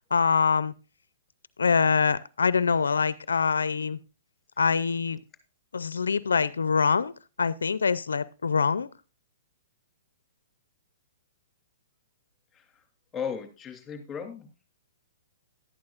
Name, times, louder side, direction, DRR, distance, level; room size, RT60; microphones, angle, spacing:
voice 1, 0.1-0.7 1.6-4.0 4.6-5.2 5.7-7.1 7.4-8.9, left 5 dB, 90° left, 18 dB, 0.4 m, -24 dB
voice 2, 13.1-14.5, left 7 dB, 15° left, 5 dB, 2.9 m, -36 dB
12.5 x 11.0 x 2.4 m, 0.33 s
hypercardioid pair, 130°, 0 cm